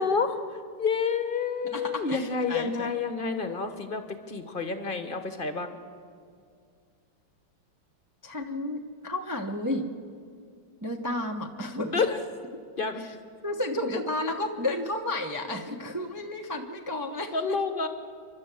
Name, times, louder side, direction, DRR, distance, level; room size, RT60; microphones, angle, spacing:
voice 1, 0.0-5.7 11.9-12.2 12.8-13.0 17.3-17.9, left 5 dB, 35° left, 8 dB, 1.1 m, -29 dB
voice 2, 1.7-2.9 8.2-9.9 10.8-12.0 13.0-13.1 13.4-17.6, left 1 dB, 15° right, 2 dB, 0.7 m, -32 dB
28.5 x 12.0 x 7.6 m, 2.2 s
omnidirectional pair, 2.0 m